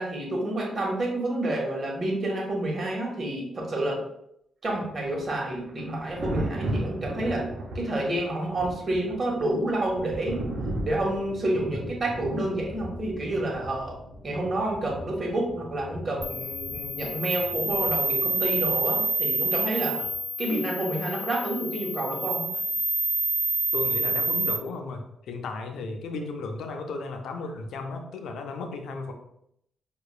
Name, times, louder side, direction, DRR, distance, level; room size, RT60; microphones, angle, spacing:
voice 1, 0.0-4.0 4.6-7.5 7.7-10.4 10.8-14.0 14.2-20.1 20.4-22.5, right 1 dB, 45° right, -1 dB, 1.2 m, -29 dB
Thunder, 4.7-18.4 20.0-20.2, right 1 dB, 75° right, 0.6 m, -37 dB
sound 1, 16.2-24.6, right 2 dB, 10° right, 1.4 m, -28 dB
voice 2, 23.7-29.1, left 3 dB, 80° left, 5 dB, 0.5 m, -34 dB
4.7 x 2.3 x 2.3 m, 0.76 s
supercardioid pair, 60°, 0 cm